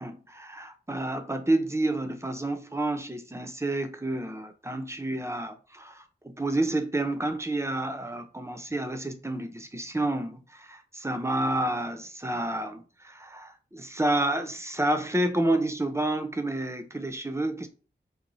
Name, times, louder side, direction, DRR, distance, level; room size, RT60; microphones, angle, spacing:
voice 1, 0.0-17.7, right 1 dB, 15° right, 0.5 m, -29 dB
2.6 x 2.0 x 3.0 m
cardioid pair, 45°, 19 cm